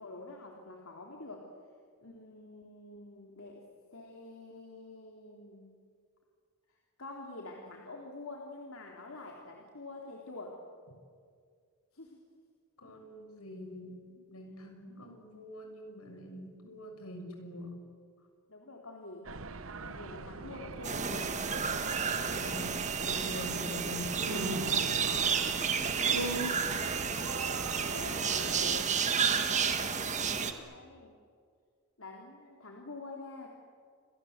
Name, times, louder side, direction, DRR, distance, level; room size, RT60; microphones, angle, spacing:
voice 1, 0.0-1.5 2.0-3.6 3.9-5.8 6.7-10.6 11.9-12.2 14.6-14.7 18.5-19.3 19.8-21.4 25.4-26.1 27.9-31.2 32.0-33.5, left 2 dB, 70° left, 0 dB, 3.4 m, -47 dB
voice 2, 12.8-17.7 22.2-24.7 26.1-26.5, equal, 85° left, 4 dB, 6.7 m, -42 dB
sound 1, 19.2-28.9, right 4 dB, 65° right, 1.1 m, -40 dB
sound 2, 20.8-30.5, right 6 dB, 35° right, 1.7 m, -31 dB
29.5 x 24.5 x 8.0 m, 2.1 s
head